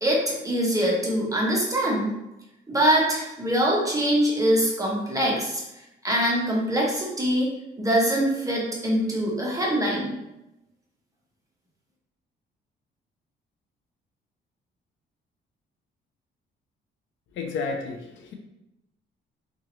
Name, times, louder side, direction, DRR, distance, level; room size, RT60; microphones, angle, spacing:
voice 1, 0.0-2.1 2.7-5.6 6.0-7.5 7.8-10.1, right 1 dB, 15° right, -3 dB, 0.9 m, -23 dB
voice 2, 17.3-18.3, left 4 dB, 75° left, 3 dB, 0.5 m, -31 dB
2.8 x 2.5 x 3.0 m, 0.90 s
cardioid pair, 90°, 20 cm